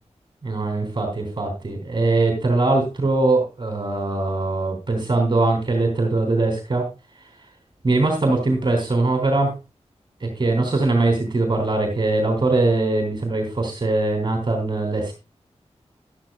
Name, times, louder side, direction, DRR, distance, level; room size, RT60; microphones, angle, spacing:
voice 1, 0.4-6.9 7.8-9.5 10.2-15.1, right 2 dB, 40° right, 3 dB, 3.4 m, -21 dB
13.0 x 12.5 x 2.4 m, 0.27 s
wide cardioid pair, 120°, 11 cm